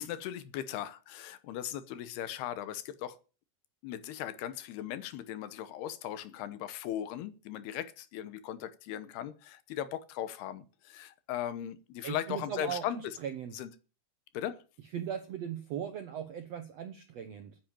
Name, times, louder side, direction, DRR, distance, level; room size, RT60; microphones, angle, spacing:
voice 1, 0.0-3.2 3.8-13.2 13.5-13.7 14.3-14.6, left 11 dB, 85° left, 2.9 m, -38 dB
voice 2, 12.0-13.5 14.9-17.6, right 9 dB, 85° right, 1.4 m, -38 dB
10.0 x 9.2 x 8.7 m
omnidirectional pair, 4.7 m